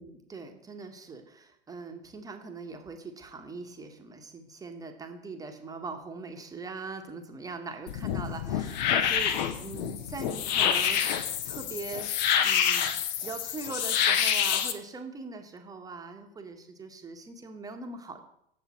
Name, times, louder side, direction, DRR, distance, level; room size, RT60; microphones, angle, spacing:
voice 1, 0.0-12.1 12.4-12.9 13.2-18.2, right 4 dB, 10° right, 5 dB, 1.0 m, -41 dB
sound 1, 7.9-14.7, left 8 dB, 50° left, 0.9 m, -27 dB
8.1 x 7.1 x 4.2 m, 0.75 s
figure-of-eight pair, 90°, 29 cm